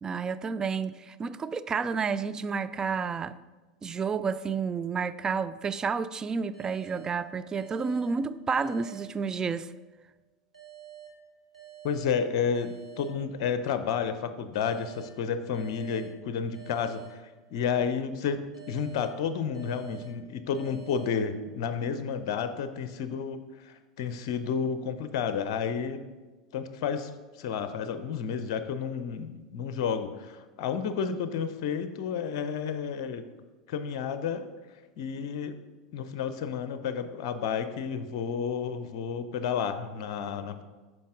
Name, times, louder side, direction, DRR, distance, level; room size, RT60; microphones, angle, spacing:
voice 1, 0.0-3.4 3.8-9.7, right 5 dB, 20° right, 0.3 m, -30 dB
sound 1, 6.5-9.9 10.5-13.9 14.5-17.9 18.5-21.9, right 10 dB, 90° right, 1.6 m, -50 dB
voice 2, 11.8-26.0 26.5-33.3 33.7-34.5 35.0-35.6 35.9-40.6, left 6 dB, 55° left, 0.6 m, -31 dB
9.3 x 6.2 x 3.8 m
figure-of-eight pair, 85°, 3 cm